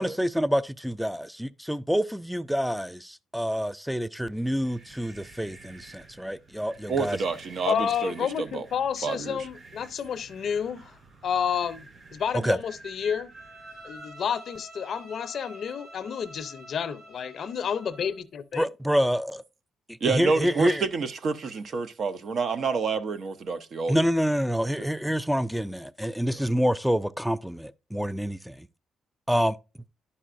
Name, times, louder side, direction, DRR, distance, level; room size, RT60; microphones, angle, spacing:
voice 1, 0.0-7.2 12.4-12.6 18.6-19.4 20.0-20.8 23.9-28.7 29.3-29.6, equal, ahead, 0.3 m, -27 dB
sound 1, 4.4-14.1, right 2 dB, 35° right, 3.5 m, -50 dB
voice 2, 6.9-8.7 9.0-9.5 20.0-24.0 24.8-24.9, right 4 dB, 55° right, 0.6 m, -28 dB
voice 3, 7.7-11.0 11.2-13.3 13.8-18.7, left 8 dB, 60° left, 0.5 m, -30 dB
Bowed string instrument, 13.3-18.2, equal, 70° right, 4.6 m, -48 dB
11.0 x 5.5 x 2.5 m
cardioid pair, 90°, 0 cm